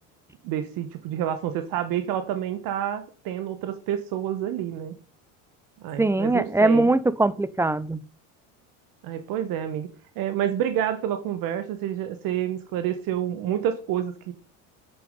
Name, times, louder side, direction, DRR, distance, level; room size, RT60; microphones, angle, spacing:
voice 1, 0.4-4.9 5.8-6.9 9.0-9.9 10.1-14.3, right 10 dB, 60° right, 1.4 m, -28 dB
voice 2, 6.0-8.0, right 2 dB, 5° right, 0.6 m, -21 dB
9.5 x 8.6 x 5.4 m
supercardioid pair, 115°, 38 cm